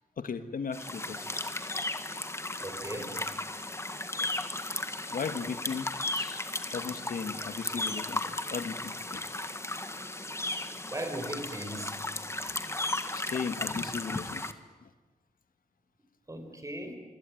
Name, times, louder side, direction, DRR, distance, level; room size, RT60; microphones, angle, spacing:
voice 1, 0.2-1.3 5.1-6.4 6.7-9.3 13.1-14.5 14.8-14.9, left 6 dB, 85° left, 9 dB, 1.7 m, -37 dB
sound 1, 0.7-14.5, left 2 dB, 20° left, 1.7 m, -35 dB
voice 2, 2.6-3.2 10.9-12.0 12.5-12.6 16.3-16.9, right 1 dB, 25° right, 6 dB, 5.8 m, -38 dB
26.0 x 25.0 x 9.2 m, 1.2 s
wide cardioid pair, 80°, 14 cm